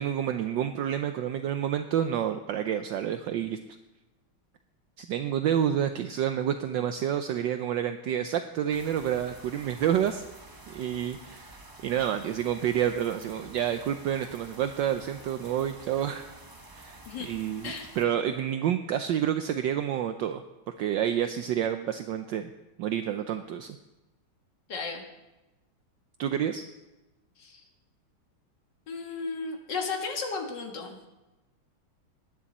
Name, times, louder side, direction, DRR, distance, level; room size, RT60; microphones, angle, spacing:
voice 1, 0.0-3.6 5.0-10.2 10.7-16.3 16.7-20.4 20.8-22.5 22.8-23.8 26.2-26.6, right 10 dB, 70° right, 8 dB, 1.2 m, -29 dB
sound 1, 8.7-18.0, right 2 dB, 25° right, 0.5 m, -49 dB
voice 2, 24.7-25.0 27.4-27.6 28.9-31.0, left 4 dB, 55° left, 2 dB, 2.5 m, -34 dB
20.0 x 9.9 x 4.2 m, 1.0 s
omnidirectional pair, 2.3 m